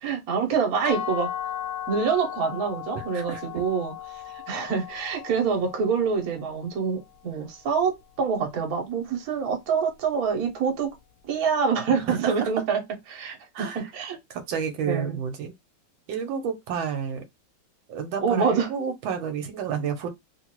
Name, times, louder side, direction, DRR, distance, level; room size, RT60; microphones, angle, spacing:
voice 1, 0.0-1.3 1.9-10.9 11.2-12.8 13.1-14.2 14.9-15.2 18.2-18.7, right 6 dB, 55° right, 1.3 m, -26 dB
sound 1, 0.8-6.7, left 10 dB, 70° left, 1.0 m, -36 dB
voice 2, 2.9-3.4 11.9-12.5 13.5-13.8 14.3-15.5 16.1-17.2 17.9-20.1, right 7 dB, 85° right, 1.5 m, -30 dB
3.6 x 2.5 x 3.0 m
omnidirectional pair, 2.1 m